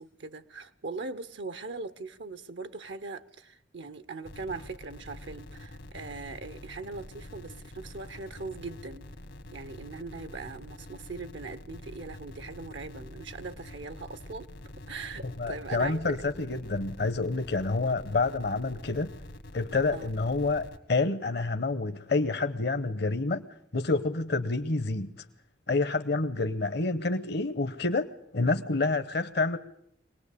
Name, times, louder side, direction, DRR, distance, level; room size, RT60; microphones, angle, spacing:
voice 1, 0.0-9.1 9.5-14.5 14.9-16.2 19.9-20.1, right 3 dB, 80° right, 0.8 m, -40 dB
sound 1, 4.2-20.8, left 1 dB, 80° left, 1.6 m, -46 dB
voice 2, 15.2-19.1 19.5-23.4 23.7-25.3 25.7-28.1 28.3-29.6, left 3 dB, 65° left, 0.9 m, -28 dB
23.5 x 19.0 x 8.4 m
head